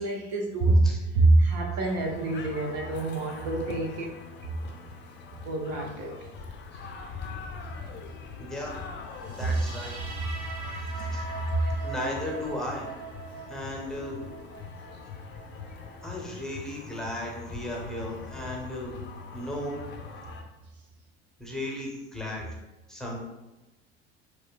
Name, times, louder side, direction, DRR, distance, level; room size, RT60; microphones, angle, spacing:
voice 1, 0.0-0.9 1.1-4.1 5.4-6.2 6.7-6.8 9.4-9.5 11.0-11.1 11.6-11.7, right 2 dB, 45° right, 0 dB, 0.6 m, -25 dB
sound 1, 1.8-20.4, left 5 dB, 30° left, 0.6 m, -42 dB
voice 2, 8.4-8.7 9.3-10.0 11.0-11.2 11.8-12.9 13.5-14.2 16.0-18.9 19.3-19.8 21.4-22.5 22.9-23.1, left 1 dB, ahead, -2 dB, 0.8 m, -35 dB
sound 2, 9.2-16.2, right 4 dB, 65° right, 1.0 m, -42 dB
6.5 x 2.2 x 2.2 m, 1.1 s
figure-of-eight pair, 65°, 35 cm